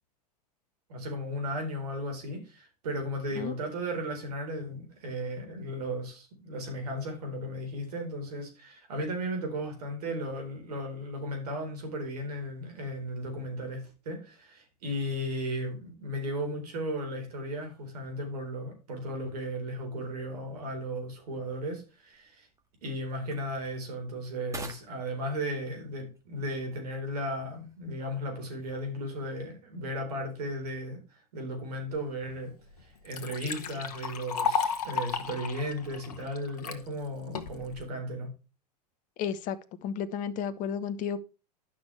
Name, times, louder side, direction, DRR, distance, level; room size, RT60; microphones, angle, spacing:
voice 1, 0.9-22.5 22.8-31.0 31.3-32.5 33.0-38.3, equal, 70° right, 4.1 m, -35 dB
sound 1, 20.2-29.4, right 3 dB, 15° right, 1.7 m, -52 dB
Liquid, 32.3-32.4 32.8-36.8 37.4-37.8, left 6 dB, 70° left, 1.4 m, -33 dB
voice 2, 39.2-41.2, left 8 dB, 40° left, 1.0 m, -33 dB
11.0 x 6.2 x 3.3 m
hypercardioid pair, 95°, 21 cm